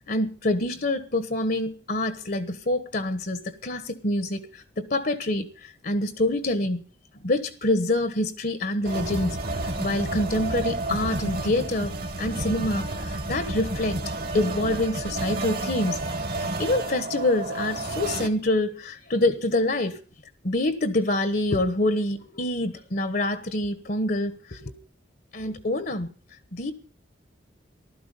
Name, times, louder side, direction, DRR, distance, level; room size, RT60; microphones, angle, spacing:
voice 1, 0.1-6.8 7.2-9.4 9.6-11.9 12.2-14.0 14.3-16.0 16.6-20.0 20.4-24.7 25.3-26.1 26.5-26.7, left 1 dB, 50° left, 1.2 m, -26 dB
sound 1, 8.8-18.3, right 2 dB, 50° right, 1.8 m, -30 dB
15.0 x 12.5 x 5.4 m
head